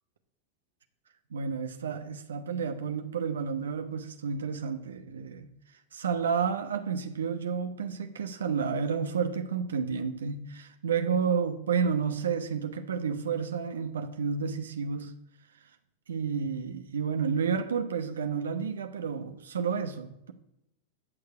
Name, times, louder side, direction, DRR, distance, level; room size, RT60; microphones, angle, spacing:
voice 1, 1.3-5.5 5.9-15.1 16.1-20.3, right 6 dB, 85° right, 1.0 m, -31 dB
13.0 x 6.7 x 7.9 m
hypercardioid pair, 100°, 0 cm